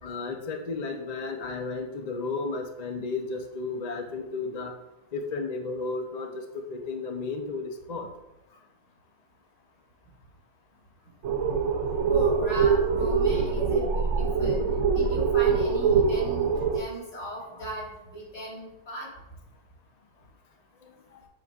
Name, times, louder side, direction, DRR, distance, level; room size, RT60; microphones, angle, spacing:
voice 1, 0.0-4.7 5.1-6.4 6.7-8.1 17.6-17.7 20.8-21.2, left 3 dB, 40° left, 3 dB, 0.6 m, -33 dB
sound 1, 11.2-16.8, right 5 dB, 65° right, 1.0 m, -24 dB
voice 2, 12.1-19.1, right 1 dB, 65° left, -5 dB, 3.0 m, -37 dB
7.7 x 6.8 x 2.4 m, 0.95 s
omnidirectional pair, 1.4 m